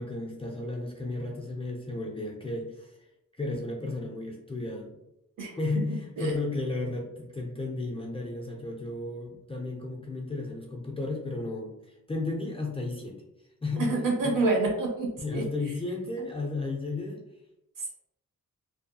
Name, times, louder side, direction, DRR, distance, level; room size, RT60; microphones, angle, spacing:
voice 1, 0.0-3.0 3.4-5.0 5.6-13.2 13.6-13.9 14.2-14.3 15.2-17.2, left 2 dB, 20° left, -2 dB, 0.3 m, -33 dB
voice 2, 13.8-15.4, right 3 dB, 70° right, -1 dB, 0.9 m, -27 dB
2.5 x 2.3 x 2.6 m, 0.85 s
wide cardioid pair, 140°, 33 cm